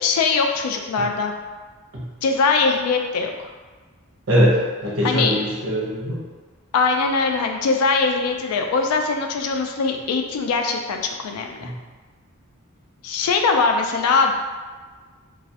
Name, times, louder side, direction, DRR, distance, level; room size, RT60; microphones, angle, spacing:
voice 1, 0.0-1.3 2.2-3.5 5.0-5.3 6.7-11.7 13.0-14.3, left 4 dB, 90° left, 3 dB, 0.3 m, -21 dB
voice 2, 4.3-6.2 11.6-11.7, equal, 70° right, -6 dB, 0.8 m, -21 dB
2.3 x 2.0 x 2.7 m, 1.4 s
head